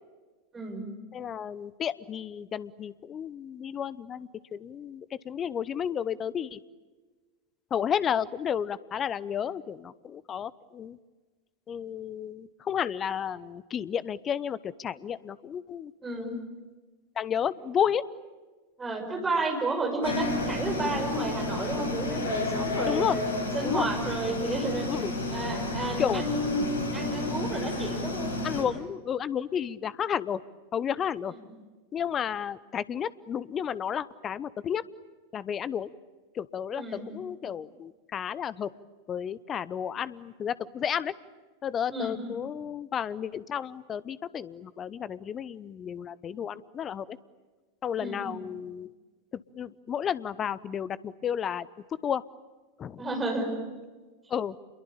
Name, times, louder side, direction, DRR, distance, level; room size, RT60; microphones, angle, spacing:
voice 1, 0.5-0.9 16.0-16.4 18.8-23.2 23.5-24.9 25.3-26.7 26.9-28.3 31.3-31.4 36.7-37.1 41.9-42.2 48.0-48.3 53.0-53.5, right 2 dB, 15° right, 3 dB, 6.2 m, -31 dB
voice 2, 1.1-6.6 7.7-11.0 11.7-16.4 17.2-18.0 22.9-23.2 23.6-23.9 24.9-25.1 26.0-26.2 28.4-30.4 30.7-31.3 31.9-34.8 35.3-35.9 36.3-38.7 39.1-41.1 41.6-47.2 47.8-48.9 49.3-51.7 52.0-52.2 52.8-53.0 54.3-54.6, left 8 dB, 25° left, 19 dB, 0.8 m, -32 dB
sound 1, 20.0-28.6, left 2 dB, 65° left, 5.4 m, -31 dB
28.0 x 23.0 x 8.8 m, 1.3 s
figure-of-eight pair, 90°, 0 cm